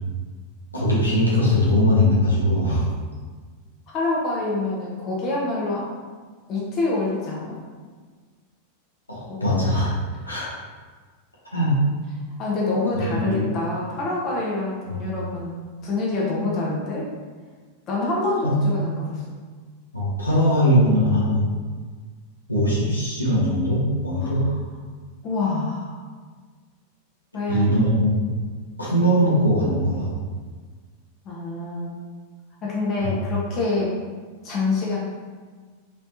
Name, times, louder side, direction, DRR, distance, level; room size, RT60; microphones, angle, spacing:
voice 1, 0.7-2.9 9.1-9.9 10.3-10.5 11.5-11.8 13.1-13.5 18.4-18.9 19.9-21.5 22.5-24.4 27.5-28.1 28.8-30.1 33.0-33.1, equal, 85° left, -8 dB, 1.0 m, -20 dB
voice 2, 3.9-5.9 6.5-7.6 9.3-9.4 12.4-15.5 15.8-17.1 17.9-19.2 24.2-24.4 25.2-26.1 27.3-27.7 31.2-31.9 32.6-33.9 34.4-35.0, left 3 dB, 35° left, -4 dB, 0.9 m, -26 dB
3.2 x 3.2 x 2.7 m, 1.5 s
figure-of-eight pair, 90°, 0 cm